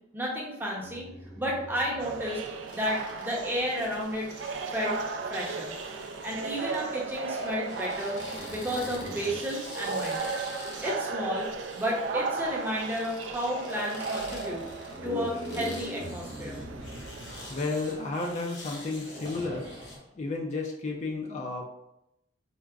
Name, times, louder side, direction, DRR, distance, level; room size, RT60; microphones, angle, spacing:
voice 1, 0.1-1.1 1.4-2.4 2.7-4.3 4.6-5.0 5.3-5.7 6.2-8.2 8.5-10.2 10.8-11.5 11.7-14.6 15.0-16.6, equal, 10° right, -4 dB, 0.6 m, -32 dB
sound 1, 0.8-2.4 5.4-5.5 6.3-6.5 7.1-9.5 13.3-13.4 14.2-17.6 18.8-20.1, equal, 70° right, 0.8 m, -42 dB
sound 2, 2.0-18.1, right 4 dB, 90° right, 0.3 m, -36 dB
sound 3, 2.7-20.0, left 2 dB, 85° left, 0.7 m, -48 dB
voice 2, 17.5-19.7 20.1-21.7, left 3 dB, 40° left, 0 dB, 0.4 m, -32 dB
4.5 x 2.1 x 2.3 m, 0.83 s
head